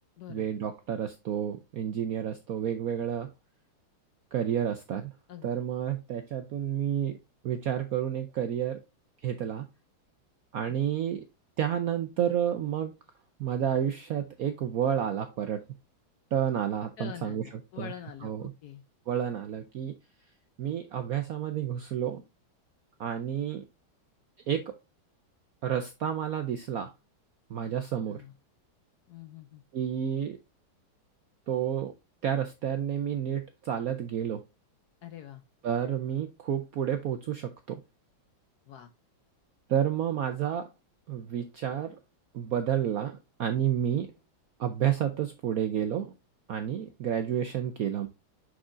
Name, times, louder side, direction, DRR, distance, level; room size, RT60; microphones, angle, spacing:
voice 1, 0.3-3.3 4.3-5.1 5.4-7.2 7.4-8.8 9.2-9.6 10.5-11.2 11.6-12.9 13.4-15.6 16.3-17.5 17.8-17.9 18.2-18.4 19.1-19.9 20.6-22.2 23.0-23.6 24.5-24.7 25.6-26.9 27.5-28.2 29.7-30.4 31.5-31.9 32.2-34.4 35.6-37.8 39.7-40.7 41.1-42.0 42.3-44.1 44.6-46.1 46.5-48.1, right 9 dB, 70° right, 0.8 m, -30 dB
voice 2, 17.0-18.8 28.1-28.3 29.1-29.6 35.0-35.4 38.7-38.9, left 10 dB, 70° left, 1.0 m, -44 dB
6.2 x 6.1 x 2.5 m
omnidirectional pair, 2.2 m